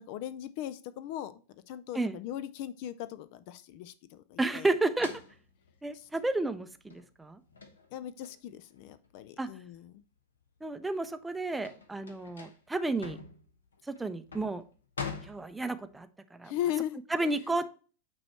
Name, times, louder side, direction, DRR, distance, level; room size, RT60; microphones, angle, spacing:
voice 1, 0.0-1.3 1.7-4.7 5.9-6.1 7.9-10.0 16.4-17.6, left 11 dB, 45° left, 13 dB, 0.4 m, -38 dB
voice 2, 4.4-5.1 5.8-7.4 9.4-9.5 10.6-13.2 13.9-14.6 15.2-16.5 17.1-17.7, right 2 dB, 5° right, 10 dB, 0.5 m, -32 dB
sound 1, 5.0-10.0 10.4-16.0, left 5 dB, 70° left, 1.0 m, -45 dB
8.8 x 3.1 x 4.3 m, 0.39 s
figure-of-eight pair, 90°, 0 cm